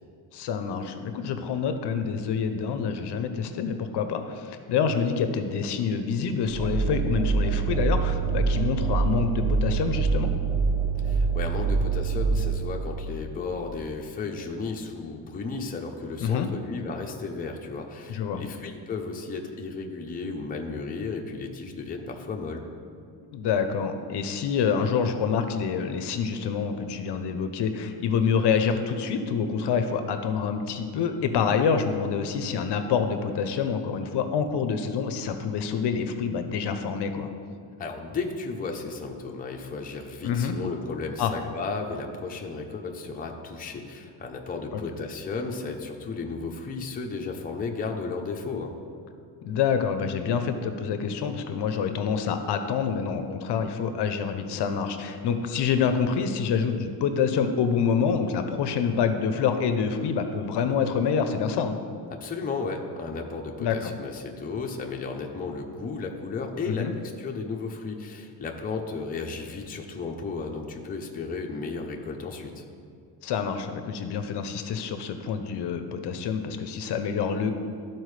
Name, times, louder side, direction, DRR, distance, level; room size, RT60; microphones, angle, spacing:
voice 1, 0.3-10.3 16.2-16.5 18.1-18.4 23.3-37.3 40.2-40.5 41.2-41.3 49.4-61.8 63.6-63.9 66.7-66.9 73.2-77.5, left 6 dB, 65° left, 8 dB, 0.6 m, -27 dB
sound 1, 6.4-12.5, right 5 dB, 90° right, 1.6 m, -25 dB
voice 2, 11.0-22.6 37.8-48.7 62.1-66.9 67.2-72.6, left 4 dB, 20° left, 1 dB, 0.5 m, -34 dB
12.5 x 4.3 x 3.2 m, 2.3 s
cardioid pair, 135°, 45 cm